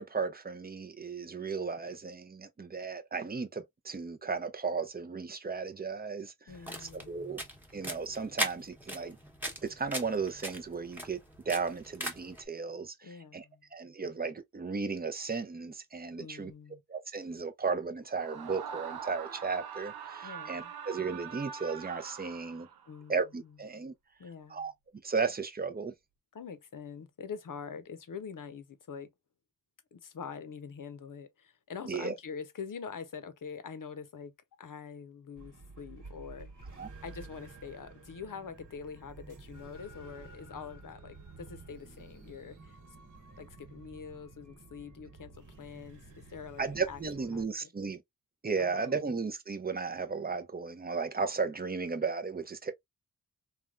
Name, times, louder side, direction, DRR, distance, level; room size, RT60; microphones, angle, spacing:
voice 1, 0.0-6.3 6.8-7.4 7.7-9.2 9.6-11.2 11.5-13.4 13.7-16.5 16.9-22.7 23.1-23.9 24.5-24.7 25.0-25.9 31.9-32.1 36.8-36.9 46.6-48.0 48.4-52.7, right 5 dB, 25° right, 0.5 m, -35 dB
voice 2, 6.5-7.3 13.0-13.7 16.2-16.8 20.2-20.7 22.9-23.6 24.2-24.7 26.3-29.1 29.9-36.5 37.0-42.8 43.4-47.7 48.6-49.1, left 6 dB, 60° left, 0.7 m, -45 dB
sound 1, 6.5-12.4, equal, 5° right, 1.0 m, -39 dB
Screaming, 18.1-23.0, right 7 dB, 80° right, 0.6 m, -43 dB
sound 2, 35.4-47.5, right 3 dB, 55° right, 1.2 m, -51 dB
3.3 x 2.3 x 2.3 m
wide cardioid pair, 95°, 37 cm